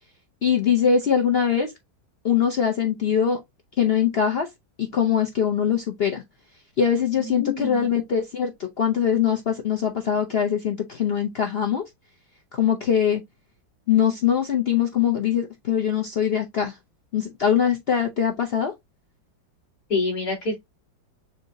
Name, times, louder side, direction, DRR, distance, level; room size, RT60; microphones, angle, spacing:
voice 1, 0.4-1.7 2.2-3.4 3.8-4.5 4.8-6.2 6.8-11.8 12.5-13.2 13.9-16.8 17.1-18.7, left 8 dB, 85° left, 0.5 m, -22 dB
voice 2, 7.2-7.9 19.9-20.5, left 3 dB, 45° left, 3.9 m, -27 dB
6.9 x 2.8 x 2.6 m
omnidirectional pair, 2.1 m